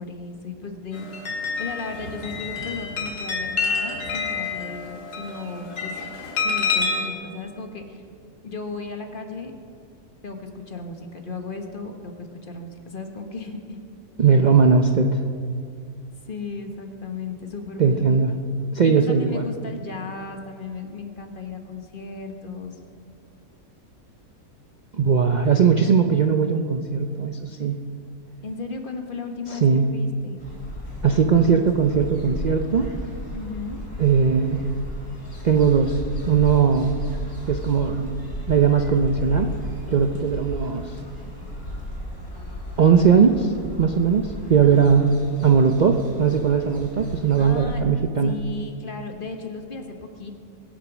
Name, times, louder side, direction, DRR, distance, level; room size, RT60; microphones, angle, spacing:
voice 1, 0.0-5.9 6.4-8.0 8.4-9.5 10.2-13.8 16.3-18.4 18.8-22.8 28.4-29.6 29.9-30.4 33.3-33.8 44.6-45.0 47.4-47.9 48.2-50.3, left 4 dB, 35° left, 4 dB, 1.2 m, -35 dB
sound 1, 0.9-7.1, left 4 dB, 85° left, 2.3 m, -28 dB
voice 2, 14.2-15.2 17.8-18.3 18.7-19.5 24.9-27.8 29.5-29.9 31.0-32.9 34.0-34.6 35.4-36.0 36.3-37.0 37.5-38.2 38.5-39.5 39.9-40.9 42.8-43.5 43.8-45.1 45.4-48.3, right 6 dB, 80° right, 5 dB, 0.4 m, -19 dB
sound 2, 30.4-47.8, left 1 dB, 65° left, 4.1 m, -35 dB
21.0 x 8.3 x 6.1 m, 2.3 s
omnidirectional pair, 1.7 m